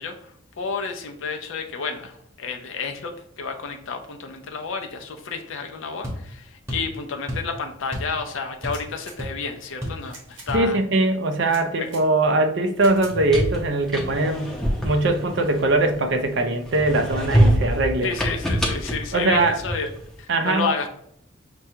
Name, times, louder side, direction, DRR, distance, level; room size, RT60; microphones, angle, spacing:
voice 1, 0.0-10.8 11.8-11.9 18.0-19.9 20.2-20.9, left 5 dB, 75° left, 4 dB, 0.5 m, -31 dB
sound 1, 6.0-6.2 6.7-6.9 7.3-7.5 7.9-8.2 8.4-8.9 9.2-9.3 9.8-10.0 10.5-10.7, equal, 15° right, 1.1 m, -31 dB
sound 2, 8.6-9.2 10.0-10.5 11.4-12.0 12.8-13.1, right 2 dB, 80° right, 1.4 m, -45 dB
voice 2, 10.5-14.5 14.8-18.1 19.1-19.6 20.3-20.7, right 2 dB, 60° right, 7 dB, 0.5 m, -21 dB
sound 3, 12.9-16.2 16.7-20.0, equal, 5° left, 0.6 m, -25 dB
6.0 x 2.2 x 2.8 m, 0.71 s
head